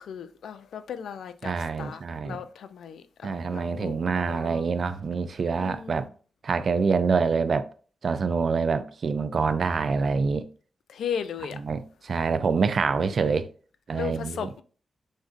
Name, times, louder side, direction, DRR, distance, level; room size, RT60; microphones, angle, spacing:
voice 1, 0.0-1.5 1.8-4.6 5.6-6.0 10.9-11.6 13.9-14.6, left 7 dB, 90° left, 0.3 m, -36 dB
voice 2, 1.4-2.4 3.2-6.1 6.4-7.7 8.0-10.5 11.5-13.5 13.9-14.5, right 5 dB, 50° right, 0.3 m, -26 dB
6.2 x 2.6 x 2.5 m
wide cardioid pair, 125°, 0 cm